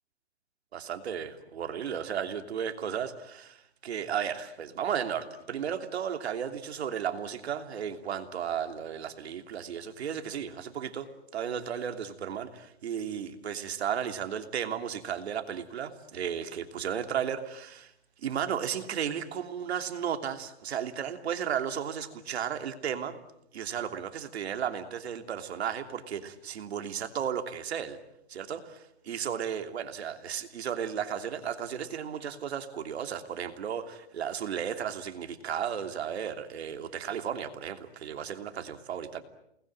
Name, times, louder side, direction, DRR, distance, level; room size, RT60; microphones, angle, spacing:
voice 1, 0.7-3.6 3.8-17.9 18.2-23.2 23.5-28.0 28.3-39.2, right 8 dB, 75° right, 8 dB, 3.0 m, -34 dB
28.5 x 20.5 x 9.0 m, 0.77 s
hypercardioid pair, 165°, 33 cm